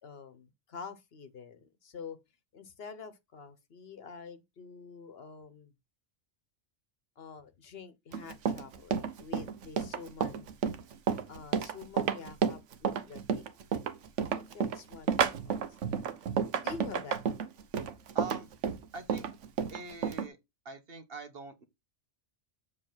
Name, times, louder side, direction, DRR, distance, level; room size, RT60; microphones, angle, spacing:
voice 1, 0.0-2.2 2.5-5.7 7.2-10.5 11.3-13.4 14.2-16.0 16.4-17.2, left 5 dB, 60° left, 1.1 m, -47 dB
Run, 8.1-20.3, right 7 dB, 90° right, 1.1 m, -31 dB
voice 2, 18.1-18.5 18.9-19.3 19.7-20.4 20.6-21.6, right 3 dB, 55° right, 1.3 m, -43 dB
7.3 x 3.2 x 6.0 m
omnidirectional pair, 1.2 m